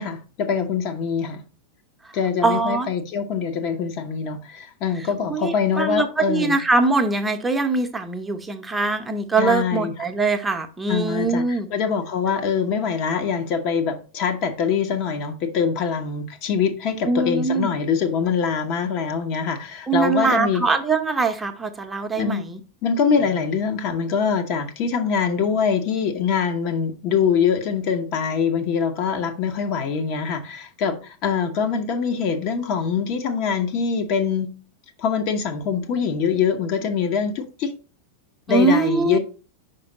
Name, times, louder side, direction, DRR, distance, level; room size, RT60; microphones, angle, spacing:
voice 1, 0.0-1.4 2.1-6.6 9.4-9.9 10.9-11.4 11.7-20.6 22.2-22.5 22.8-34.5 35.0-37.8 38.5-39.2, left 6 dB, 40° left, 0.9 m, -23 dB
voice 2, 2.4-2.9 5.2-11.7 17.0-17.7 19.9-22.6 38.5-39.2, right 3 dB, 10° right, 0.8 m, -22 dB
5.3 x 5.1 x 4.0 m
figure-of-eight pair, 90°, 0 cm